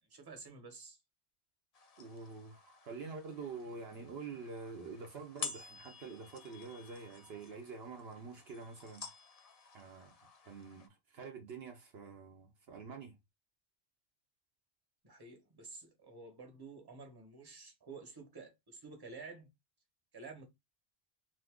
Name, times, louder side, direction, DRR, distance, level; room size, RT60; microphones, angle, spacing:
voice 1, 0.1-1.0 15.0-19.5 20.1-20.5, right 4 dB, 20° right, 1.0 m, -51 dB
sound 1, 1.7-10.9, left 6 dB, 45° left, 0.5 m, -50 dB
voice 2, 2.0-9.1 9.7-10.1 10.4-13.2, right 4 dB, 70° right, 0.9 m, -47 dB
2.6 x 2.5 x 3.5 m
omnidirectional pair, 1.1 m